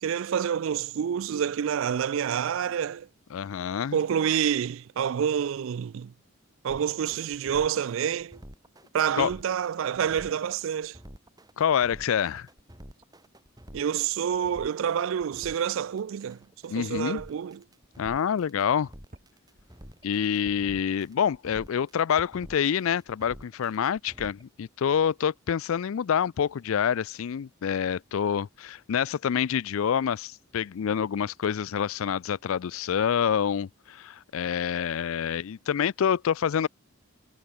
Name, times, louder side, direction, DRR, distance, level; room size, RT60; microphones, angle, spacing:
voice 1, 0.0-3.1 3.9-6.1 6.6-8.4 8.9-11.0 13.7-17.6, right 8 dB, 65° right, 0.3 m, -28 dB
voice 2, 3.3-4.0 9.2-9.3 11.6-12.5 16.7-17.2 18.0-18.9 20.0-36.7, left 8 dB, 75° left, 0.4 m, -27 dB
sound 1, 6.7-24.4, equal, 20° right, 4.5 m, -48 dB
sound 2, 19.1-19.3 20.4-20.6 22.1-22.3 24.1-24.4, right 1 dB, 40° right, 2.7 m, -48 dB
head